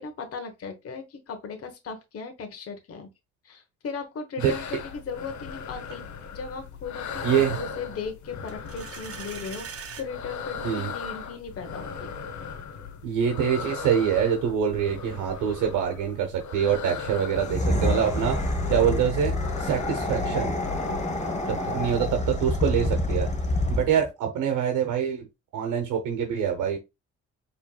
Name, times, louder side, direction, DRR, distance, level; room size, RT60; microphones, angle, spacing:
voice 1, 0.0-3.1 3.4-6.0 6.3-12.1 20.8-21.3, left 5 dB, 50° left, 1.1 m, -37 dB
sound 1, 4.4-22.1, left 5 dB, 70° left, 0.9 m, -38 dB
voice 2, 7.2-7.6 10.6-10.9 13.0-18.4 18.7-20.5 21.5-23.3 23.7-25.3 25.5-26.8, right 8 dB, 85° right, 1.0 m, -25 dB
sound 2, 8.5-10.1, right 7 dB, 50° right, 1.0 m, -40 dB
sound 3, 17.3-24.1, left 1 dB, 25° left, 1.2 m, -27 dB
4.6 x 3.3 x 2.3 m
cardioid pair, 90°, 30 cm